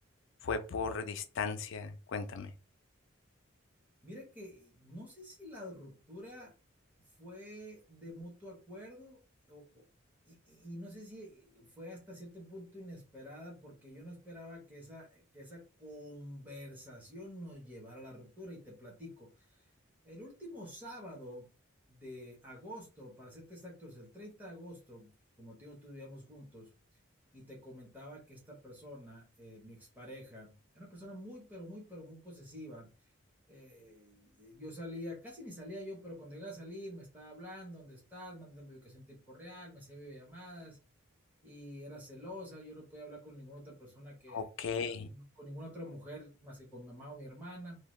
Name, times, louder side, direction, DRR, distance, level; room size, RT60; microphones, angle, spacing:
voice 1, 0.4-2.5 44.3-45.1, left 5 dB, 60° left, 0.4 m, -36 dB
voice 2, 4.0-6.5 7.2-9.2 9.5-9.8 10.3-19.6 20.0-21.5 21.9-26.7 27.3-32.9 33.5-40.8 41.4-44.5 44.8-47.8, equal, 10° right, 0.9 m, -48 dB
2.7 x 2.2 x 3.1 m
head